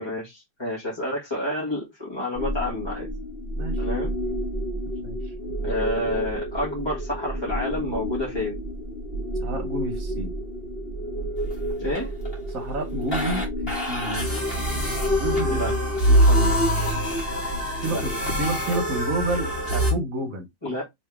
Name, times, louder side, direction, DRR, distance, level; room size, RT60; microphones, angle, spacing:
voice 1, 0.0-3.1 3.8-4.1 5.6-8.6 11.8-12.1 15.5-15.7 17.9-18.3 20.6-20.8, left 1 dB, 15° left, 1.6 m, -29 dB
sound 1, 2.3-19.9, equal, 35° left, 1.9 m, -26 dB
voice 2, 9.4-10.3 12.5-14.3 15.1-15.7 16.1-16.5 17.8-20.5, right 2 dB, 55° right, 1.6 m, -30 dB
3.5 x 3.4 x 3.4 m
omnidirectional pair, 1.9 m